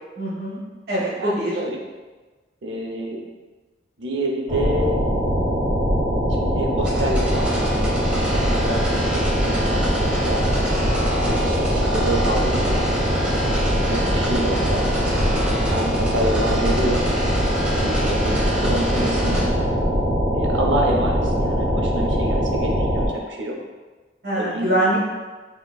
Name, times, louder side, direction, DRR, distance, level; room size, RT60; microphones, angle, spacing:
voice 1, 0.2-0.6 0.9-1.6 19.3-19.4 24.2-25.0, right 1 dB, 60° right, -6 dB, 1.0 m, -23 dB
voice 2, 1.2-1.8 2.6-3.2 4.0-5.0 6.4-10.4 11.2-12.9 13.9-17.0 17.8-19.5 20.3-23.6 24.4-25.0, right 1 dB, 90° right, 0 dB, 0.7 m, -27 dB
sound 1, 4.5-23.1, equal, 25° right, 1.1 m, -21 dB
sound 2, 6.8-19.4, equal, 5° right, 0.8 m, -30 dB
5.9 x 3.0 x 2.3 m, 1.3 s
head